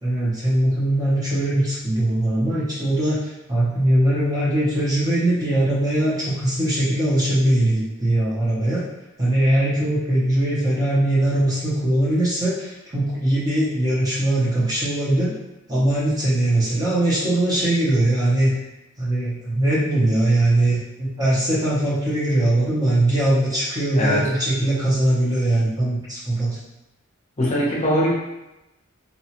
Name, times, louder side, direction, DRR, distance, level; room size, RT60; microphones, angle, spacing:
voice 1, 0.0-8.8 9.2-15.4 15.7-18.5 19.0-26.6, right 1 dB, 20° right, -7 dB, 0.6 m, -21 dB
voice 2, 23.9-24.3 27.4-28.1, equal, 35° left, -5 dB, 0.7 m, -21 dB
2.8 x 2.3 x 2.8 m, 0.96 s
head